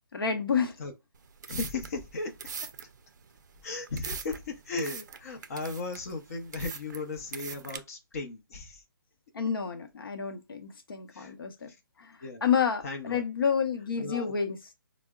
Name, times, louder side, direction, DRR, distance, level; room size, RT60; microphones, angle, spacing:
voice 1, 0.1-0.8 9.3-11.7 12.0-14.6, left 7 dB, 80° left, 0.7 m, -29 dB
sound 1, 1.1-7.8, right 6 dB, 55° right, 0.4 m, -42 dB
voice 2, 1.5-2.3 3.6-8.8 11.1-11.3 12.2-12.4 12.8-13.2 14.0-14.3, left 3 dB, 40° left, 0.7 m, -36 dB
4.4 x 2.0 x 2.3 m
hypercardioid pair, 165°, 12 cm